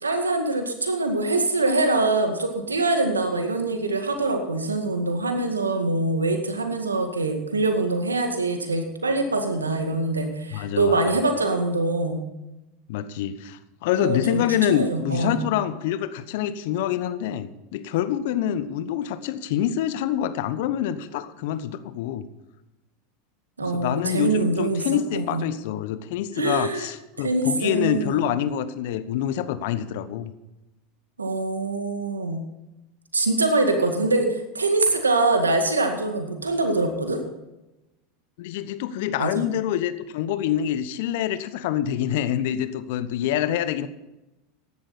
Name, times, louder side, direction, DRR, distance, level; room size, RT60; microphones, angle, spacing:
voice 1, 0.0-12.2 13.9-14.4 14.7-15.4 23.6-25.4 26.4-26.9 27.2-28.2 31.2-32.4 33.1-37.2 39.2-39.4, right 2 dB, 90° right, 6 dB, 2.0 m, -24 dB
voice 2, 10.5-11.1 12.9-22.3 23.6-30.3 38.4-43.9, left 10 dB, 65° left, 13 dB, 1.0 m, -26 dB
15.5 x 11.5 x 4.3 m, 0.98 s
hypercardioid pair, 85°, 0 cm